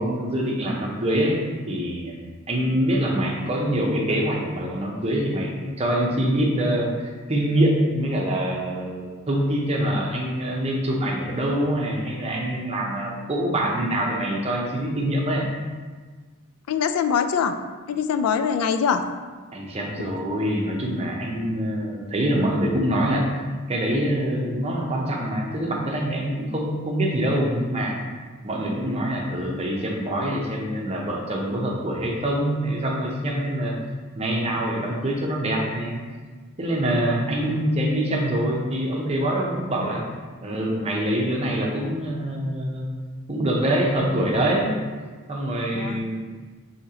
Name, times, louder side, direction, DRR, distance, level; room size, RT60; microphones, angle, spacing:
voice 1, 0.0-1.4 1.7-2.2 2.5-15.5 19.5-23.3 23.7-28.0 28.4-33.8 34.1-36.0 36.6-40.0 40.4-42.9 43.3-44.8 45.3-46.2, right 1 dB, 30° right, -1 dB, 0.7 m, -25 dB
voice 2, 16.7-17.5 17.9-19.0 45.7-46.0, left 7 dB, 80° left, 9 dB, 0.3 m, -23 dB
6.2 x 2.8 x 2.8 m, 1.4 s
head